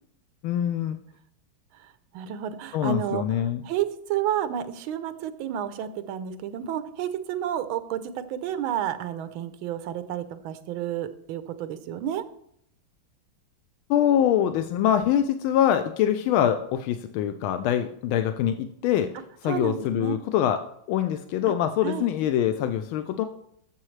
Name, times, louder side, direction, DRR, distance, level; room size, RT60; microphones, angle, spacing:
voice 1, 0.4-1.0 2.7-3.6 13.9-19.1 19.4-20.6 20.9-23.2, left 10 dB, 85° left, 9 dB, 1.4 m, -24 dB
voice 2, 2.1-3.2 3.6-12.2 19.5-20.2 21.8-22.1, right 10 dB, 80° right, 12 dB, 1.5 m, -30 dB
13.0 x 7.1 x 3.2 m, 0.70 s
omnidirectional pair, 2.2 m